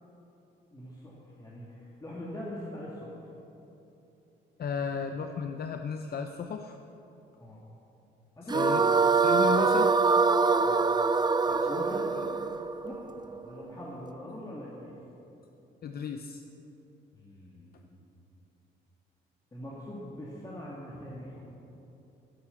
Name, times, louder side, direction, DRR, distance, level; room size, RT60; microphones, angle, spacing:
voice 1, 0.7-3.2 7.4-7.6 8.4-8.9 10.6-10.8 11.6-12.1 12.8-12.9 13.4-14.9 17.1-18.0 19.5-21.4, left 1 dB, 20° left, -6 dB, 2.4 m, -42 dB
voice 2, 4.6-6.8 8.5-8.8 9.2-9.9 11.5-11.7 12.1-12.4 15.8-16.4, left 6 dB, 50° left, 6 dB, 0.7 m, -34 dB
sound 1, 8.5-13.7, right 4 dB, 20° right, 0.6 m, -24 dB
13.0 x 10.0 x 7.0 m, 3.0 s
cardioid pair, 90°, 20 cm